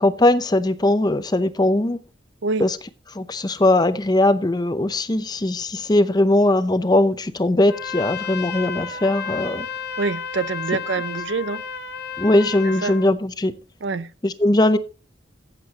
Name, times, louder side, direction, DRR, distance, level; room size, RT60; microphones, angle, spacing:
voice 1, 0.0-2.0 2.6-2.8 3.1-9.7 12.2-13.5 14.2-14.8, left 1 dB, 20° left, 0.6 m, -19 dB
Trumpet, 7.7-13.1, left 6 dB, 60° left, 1.1 m, -32 dB
voice 2, 10.0-11.6 12.6-12.9 13.8-14.1, right 4 dB, 75° right, 0.6 m, -26 dB
15.0 x 7.5 x 2.9 m
head